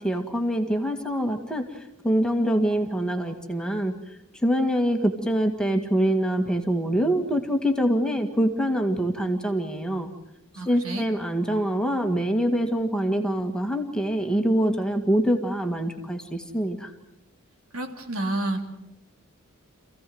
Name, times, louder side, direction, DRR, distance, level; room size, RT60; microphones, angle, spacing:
voice 1, 0.0-10.1 10.6-16.9, equal, 5° left, 4 dB, 1.8 m, -25 dB
voice 2, 10.5-11.1 17.7-18.7, right 2 dB, 75° right, 4 dB, 3.0 m, -30 dB
27.5 x 16.0 x 7.8 m, 0.93 s
head